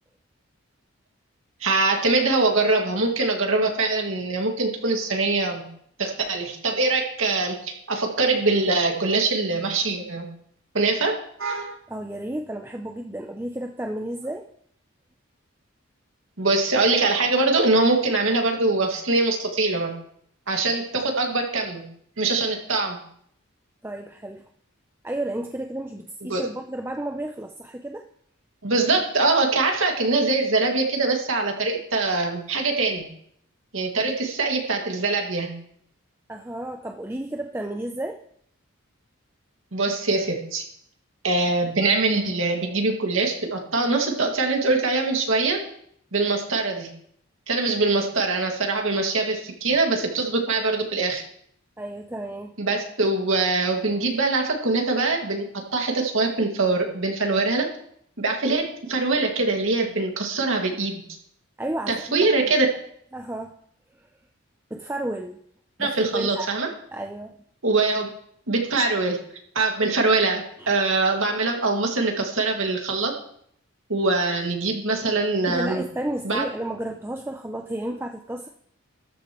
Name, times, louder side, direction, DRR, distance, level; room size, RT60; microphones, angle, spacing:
voice 1, 1.6-5.6 6.0-10.2 10.7-11.7 16.4-19.9 20.5-21.8 22.2-23.0 26.3-26.4 28.6-33.1 33.7-35.5 39.7-40.6 41.2-45.6 46.1-46.9 47.5-51.2 52.6-55.4 55.7-57.7 58.2-58.6 58.9-61.0 61.9-62.7 65.8-66.7 67.6-68.1 68.5-69.2 69.5-73.1 73.9-75.8 76.2-76.4, right 3 dB, 75° right, 1 dB, 2.2 m, -23 dB
voice 2, 11.9-14.5 23.8-24.5 25.0-28.1 34.0-34.1 36.3-38.2 51.8-52.6 58.5-58.6 61.6-62.5 63.1-63.5 64.0-64.1 64.7-65.4 65.8-66.5 66.9-67.4 70.6-70.8 75.5-78.5, right 1 dB, 10° right, 3 dB, 0.5 m, -32 dB
13.5 x 11.5 x 3.1 m, 0.68 s
head